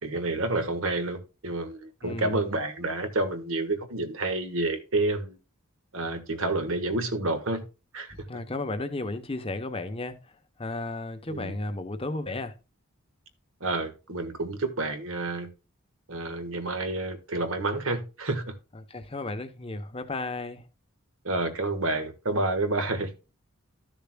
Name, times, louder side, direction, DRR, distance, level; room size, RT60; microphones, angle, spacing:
voice 1, 0.0-5.4 5.9-7.6 7.9-8.1 11.3-11.5 13.6-15.5 16.1-18.5 21.2-23.1, right 2 dB, 65° right, 1.4 m, -29 dB
voice 2, 2.0-2.4 8.3-10.2 10.6-12.5 18.9-20.6, left 2 dB, 25° left, 0.8 m, -33 dB
13.0 x 6.9 x 2.2 m
head